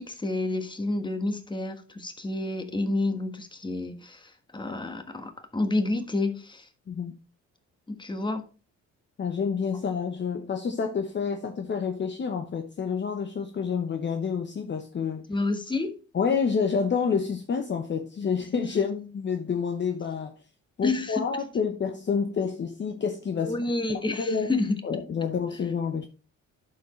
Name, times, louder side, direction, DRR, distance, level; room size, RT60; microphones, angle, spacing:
voice 1, 0.0-6.7 7.9-8.4 15.3-15.9 20.8-21.3 23.4-24.7, left 2 dB, 15° left, 1.3 m, -29 dB
voice 2, 6.9-7.2 9.2-15.2 16.1-20.3 20.8-23.6 24.2-24.5 24.8-26.1, left 6 dB, 35° left, 0.8 m, -28 dB
11.0 x 4.7 x 3.1 m
cardioid pair, 90°, 30 cm